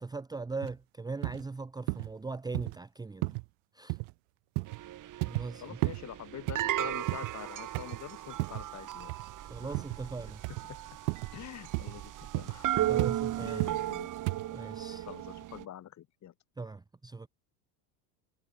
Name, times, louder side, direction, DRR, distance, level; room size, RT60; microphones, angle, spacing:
voice 1, 0.0-3.4 3.7-4.0 5.3-5.8 9.5-10.4 12.9-13.6 14.5-15.1 16.6-17.3, right 3 dB, 10° right, 0.9 m, -40 dB
sound 1, 0.6-0.7 1.2-1.4 1.9-2.1 2.5-2.8 3.2-3.5 3.9-4.1 4.6-4.8 5.2-5.5 5.8-6.0 6.5-7.4 7.7-8.0 8.4-8.7 9.1-9.3 9.7-10.0 10.4-10.7 11.1-11.3 11.7-12.0 12.3-12.6 13.0-13.2 13.6-13.8 14.3-14.5, right 40 dB or more, 65° right, 1.2 m, -33 dB
sound 2, 4.7-15.6, right 13 dB, 40° right, 4.7 m, -36 dB
voice 2, 5.6-9.1 9.6-9.7 10.5-10.8 11.3-12.9 13.4-14.1 15.0-16.3, left 11 dB, 35° left, 3.4 m, -46 dB
supercardioid pair, 110°, 45 cm